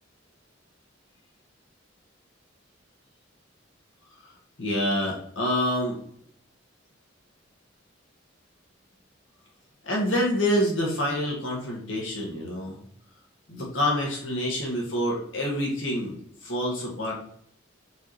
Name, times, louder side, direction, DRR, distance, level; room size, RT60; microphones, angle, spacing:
voice 1, 4.6-6.0 9.8-12.8 13.5-16.2 16.4-17.1, equal, 75° left, -3 dB, 1.9 m, -27 dB
7.9 x 4.2 x 3.1 m, 0.64 s
head